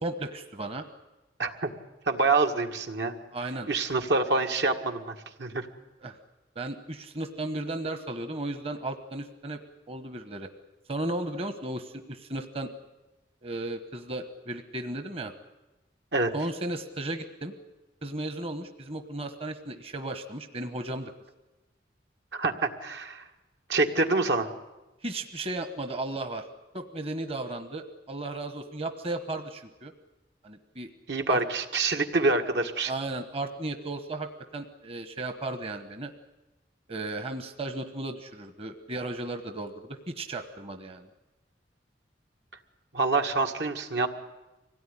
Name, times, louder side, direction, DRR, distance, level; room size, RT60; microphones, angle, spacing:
voice 1, 0.0-0.9 3.3-3.7 6.0-6.2 6.5-9.6 9.9-10.5 10.9-12.7 13.4-15.3 16.3-17.6 18.0-21.1 25.0-26.4 26.7-29.9 30.4-30.9 31.3-31.4 32.8-36.1 36.9-41.1, right 2 dB, 35° right, 7 dB, 1.1 m, -35 dB
voice 2, 1.4-1.7 2.1-3.1 3.7-5.7 16.1-16.3 22.3-23.2 23.7-24.5 31.1-32.9 42.9-44.1, right 3 dB, 75° right, 4 dB, 1.9 m, -26 dB
25.0 x 17.5 x 10.0 m, 1.1 s
head